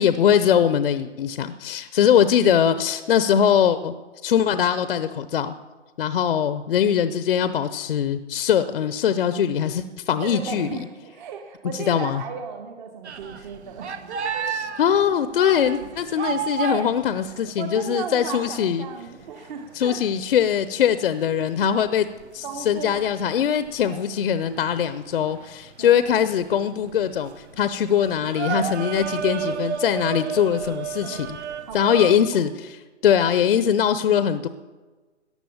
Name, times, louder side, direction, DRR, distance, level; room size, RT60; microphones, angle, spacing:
voice 1, 0.0-3.9 4.2-5.6 6.0-10.7 11.7-12.2 14.5-18.9 19.7-22.1 22.3-31.4 31.7-32.8 33.0-34.5, left 8 dB, 50° left, 13 dB, 0.7 m, -21 dB
voice 2, 10.2-14.5 17.3-20.0 22.4-23.0 23.4-23.5 23.8-24.0 25.8-26.2 28.5-28.8 31.0-32.4, right 6 dB, 40° right, 5 dB, 1.3 m, -36 dB
sound 1, 13.0-18.3 18.7-18.8 19.1-32.2, right 7 dB, 65° right, 1.4 m, -32 dB
14.5 x 10.0 x 7.1 m, 1.3 s
hypercardioid pair, 140°, 36 cm